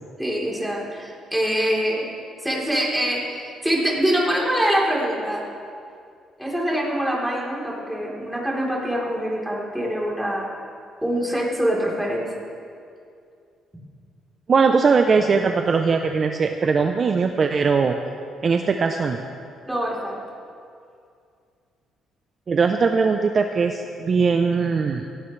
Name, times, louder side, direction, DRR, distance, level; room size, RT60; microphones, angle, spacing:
voice 1, 0.2-2.1 2.4-5.4 6.4-10.5 11.0-12.3 19.7-20.2, equal, 5° right, -4 dB, 3.8 m, -24 dB
voice 2, 14.5-18.0 18.4-19.2 22.5-25.1, right 5 dB, 40° right, 5 dB, 0.7 m, -20 dB
18.5 x 17.0 x 3.3 m, 2.4 s
cardioid pair, 110°, 0 cm